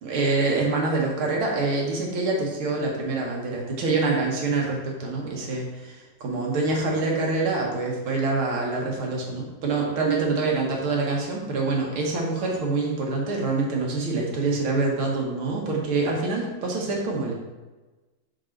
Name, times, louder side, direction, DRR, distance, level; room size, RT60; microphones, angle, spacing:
voice 1, 0.0-17.3, right 3 dB, 85° right, -1 dB, 2.2 m, -26 dB
5.5 x 5.1 x 4.5 m, 1.2 s
omnidirectional pair, 2.3 m